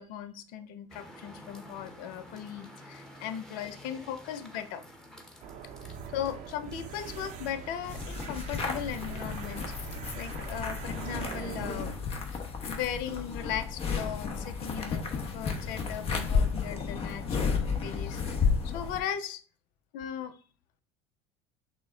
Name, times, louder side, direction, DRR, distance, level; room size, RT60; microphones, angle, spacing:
voice 1, 0.0-4.8 5.8-11.9 12.3-12.4 12.7-19.4 19.9-20.4, left 9 dB, 65° left, 10 dB, 0.5 m, -38 dB
sound 1, 0.9-9.7, equal, 5° left, 1.0 m, -50 dB
sound 2, 5.4-12.0, right 7 dB, 60° right, 0.8 m, -42 dB
sound 3, 7.9-19.0, left 5 dB, 40° left, 1.0 m, -32 dB
6.2 x 2.1 x 3.7 m, 0.39 s
supercardioid pair, 95°, 15 cm